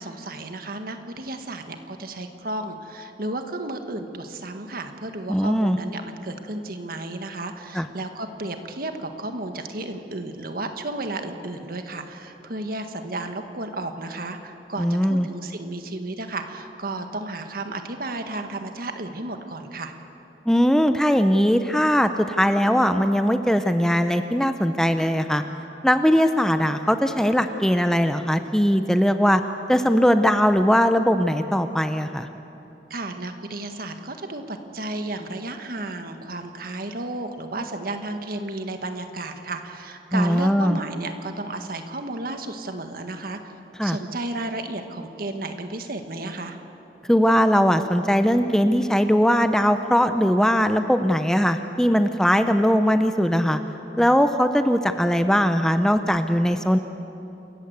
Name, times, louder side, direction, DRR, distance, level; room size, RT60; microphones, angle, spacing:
voice 1, 0.0-19.9 32.9-43.5 43.8-46.6, right 2 dB, 55° right, 6 dB, 1.7 m, -33 dB
voice 2, 5.3-5.8 7.7-7.9 14.8-15.3 20.5-25.4 25.8-29.4 29.7-32.3 40.1-40.8 43.8-44.0 47.1-53.6 54.0-56.8, equal, 5° left, 8 dB, 0.6 m, -20 dB
28.0 x 14.5 x 8.2 m, 2.9 s
head